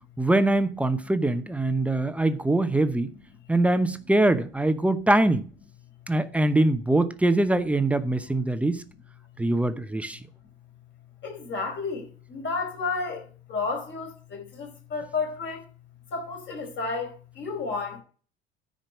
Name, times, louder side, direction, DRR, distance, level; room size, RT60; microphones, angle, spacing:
voice 1, 0.2-3.1 3.5-5.4 6.1-8.8 9.4-10.2, right 2 dB, 5° right, 0.8 m, -23 dB
voice 2, 11.2-12.0 12.3-13.2 13.5-15.6 16.1-17.1 17.4-18.0, left 4 dB, 40° left, 4.7 m, -31 dB
10.0 x 5.2 x 7.5 m
figure-of-eight pair, 65°, 29 cm